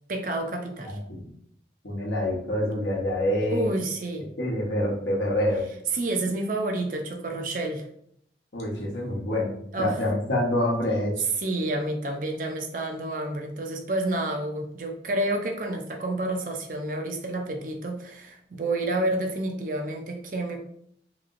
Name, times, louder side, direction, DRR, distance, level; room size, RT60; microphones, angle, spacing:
voice 1, 0.1-1.0 3.5-4.3 5.9-7.9 9.7-10.0 11.4-20.6, right 1 dB, 50° right, 3 dB, 0.5 m, -29 dB
voice 2, 0.9-1.3 1.8-3.7 4.4-5.7 8.5-11.3, left 1 dB, 85° left, -2 dB, 0.9 m, -26 dB
3.0 x 2.9 x 2.5 m, 0.68 s
head